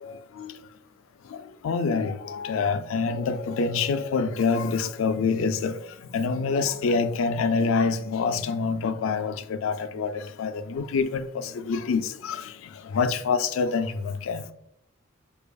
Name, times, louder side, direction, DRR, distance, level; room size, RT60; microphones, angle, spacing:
voice 1, 0.0-0.5 1.3-1.4 1.6-5.7 6.1-11.2 11.5-12.4 12.9-14.4, left 4 dB, 65° left, 0.3 m, -26 dB
4.6 x 2.5 x 2.3 m
head